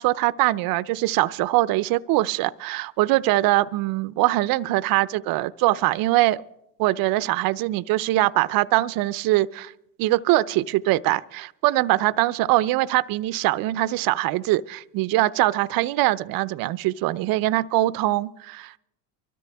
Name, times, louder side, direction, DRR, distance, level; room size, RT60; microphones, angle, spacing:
voice 1, 0.0-6.4 6.8-9.7 10.0-18.8, right 17 dB, 55° right, 0.7 m, -22 dB
24.0 x 13.0 x 3.5 m
supercardioid pair, 95°, 41 cm